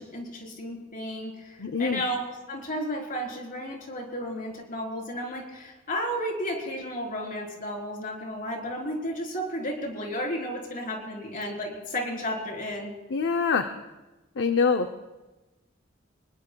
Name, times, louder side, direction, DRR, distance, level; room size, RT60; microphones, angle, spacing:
voice 1, 0.0-12.9, equal, 45° left, 0 dB, 3.9 m, -33 dB
voice 2, 1.6-2.0 13.1-13.7 14.4-14.9, left 5 dB, 60° left, 7 dB, 0.6 m, -24 dB
25.0 x 20.5 x 2.3 m, 1.1 s
head